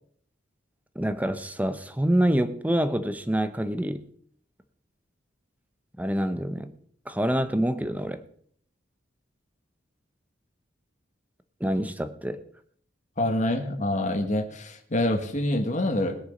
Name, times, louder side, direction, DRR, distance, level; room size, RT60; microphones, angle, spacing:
voice 1, 0.9-4.0 6.0-6.7 7.1-8.2 11.6-12.4, equal, 10° right, 11 dB, 0.8 m, -26 dB
voice 2, 13.2-16.2, left 1 dB, 40° left, 4 dB, 1.6 m, -26 dB
20.5 x 6.9 x 5.2 m, 0.62 s
head